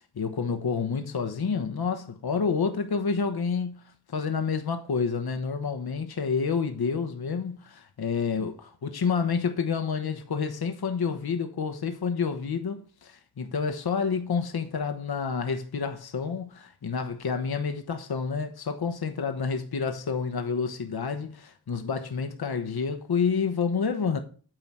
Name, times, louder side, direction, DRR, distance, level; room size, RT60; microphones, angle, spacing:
voice 1, 0.1-3.8 4.1-8.5 8.9-24.2, left 5 dB, 55° left, 1.0 m, -29 dB
9.0 x 3.9 x 6.0 m
cardioid pair, 45°, 45 cm